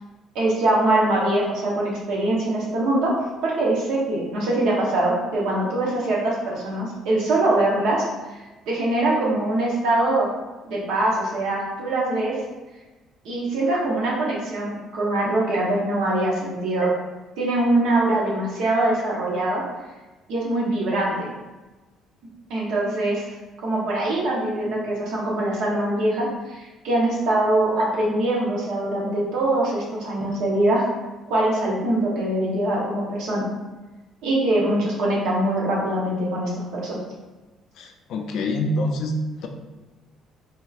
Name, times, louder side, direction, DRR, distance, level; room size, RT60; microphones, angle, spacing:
voice 1, 0.3-3.2 3.4-8.1 8.7-10.3 10.7-12.4 13.2-16.9 17.4-19.6 20.3-21.3 22.5-23.2 23.6-30.9 31.3-33.5 34.2-37.0, right 1 dB, 70° right, -4 dB, 0.9 m, -23 dB
voice 2, 37.8-39.5, left 1 dB, 50° left, 4 dB, 0.3 m, -26 dB
3.4 x 2.9 x 2.4 m, 1.2 s
cardioid pair, 175°, 0 cm